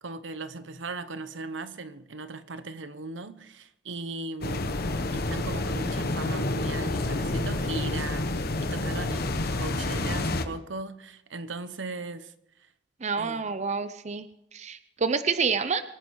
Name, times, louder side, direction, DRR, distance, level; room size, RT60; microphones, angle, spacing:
voice 1, 0.0-4.7 5.1-12.3 13.2-13.5, right 3 dB, 75° right, 1.0 m, -38 dB
sound 1, 4.4-10.5, left 2 dB, 55° left, 1.1 m, -29 dB
voice 2, 13.0-14.3 14.5-15.8, right 5 dB, 40° right, 0.6 m, -28 dB
24.0 x 9.7 x 4.8 m
head